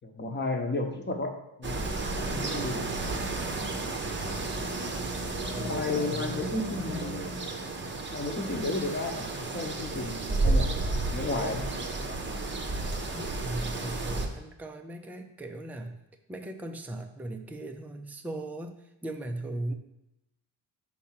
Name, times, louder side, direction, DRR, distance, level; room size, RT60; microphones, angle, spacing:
voice 1, 0.0-1.3 1.6-1.9 2.3-3.2 5.5-7.3 8.1-11.6, left 2 dB, 25° left, 4 dB, 1.0 m, -33 dB
sound 1, 1.6-14.3, right 2 dB, 25° right, 0.8 m, -32 dB
voice 2, 2.2-2.7 4.9-5.2 5.5-7.2 13.1-16.0 16.3-19.7, right 1 dB, 5° right, 4 dB, 0.5 m, -39 dB
4.8 x 4.1 x 5.8 m, 0.88 s
cardioid pair, 90°, 46 cm